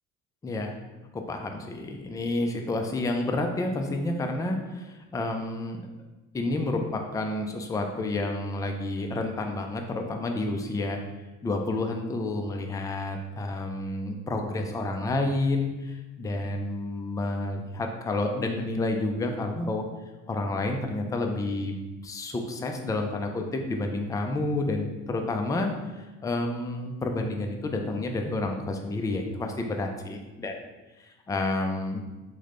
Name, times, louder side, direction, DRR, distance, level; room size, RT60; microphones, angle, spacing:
voice 1, 0.4-0.7 1.1-5.9 6.3-11.0 11.4-19.8 20.3-21.8 22.0-25.7 26.0-30.5 31.0-32.1, left 2 dB, 10° left, 3 dB, 0.3 m, -30 dB
3.2 x 2.2 x 3.7 m, 1.1 s
cardioid pair, 95°, 31 cm